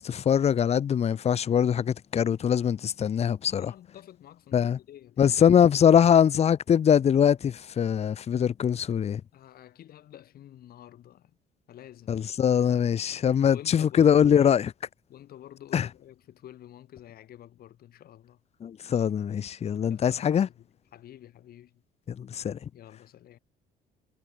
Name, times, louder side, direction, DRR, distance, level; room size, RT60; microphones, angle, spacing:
voice 1, 0.0-3.7 4.5-4.8 5.2-9.2 12.1-14.7 15.7-15.9 18.6-20.5 22.2-22.6, left 8 dB, 40° left, 0.9 m, -22 dB
voice 2, 3.5-5.4 5.7-5.8 9.3-11.4 11.7-12.2 13.3-14.5 15.1-18.4 19.7-21.8 22.7-23.4, left 12 dB, 65° left, 6.6 m, -49 dB
cardioid pair, 110°, 17 cm